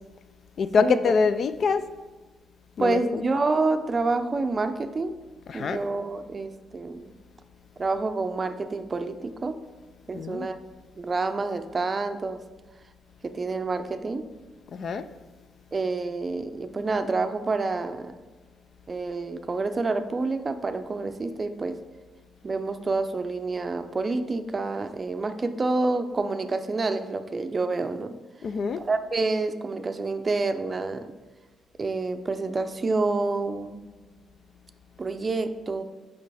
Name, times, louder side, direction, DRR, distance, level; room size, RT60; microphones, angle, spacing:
voice 1, 0.6-1.9 2.8-3.3 5.5-5.8 10.1-10.5 14.7-15.1 28.4-28.8, left 5 dB, 55° left, 12 dB, 0.3 m, -25 dB
voice 2, 2.8-5.2 5.5-7.1 7.8-9.6 10.1-10.6 11.0-12.4 13.2-14.3 15.7-18.2 18.9-21.8 22.4-28.2 28.8-31.1 31.8-33.8 35.0-35.8, right 3 dB, 30° right, 9 dB, 0.5 m, -28 dB
6.7 x 5.2 x 3.4 m, 1.2 s
cardioid pair, 90°, 0 cm